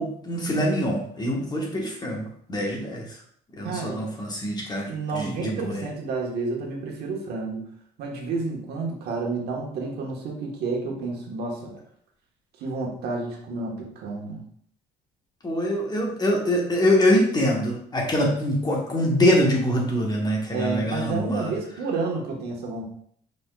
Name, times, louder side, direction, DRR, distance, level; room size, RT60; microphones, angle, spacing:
voice 1, 0.0-3.0 3.6-5.8 15.4-21.5, equal, 25° left, -1 dB, 1.2 m, -24 dB
voice 2, 3.6-4.0 4.9-7.7 8.0-11.8 12.6-14.4 20.5-22.9, right 3 dB, 75° right, 0 dB, 1.2 m, -30 dB
5.1 x 4.3 x 2.3 m, 0.62 s
cardioid pair, 110°, 17 cm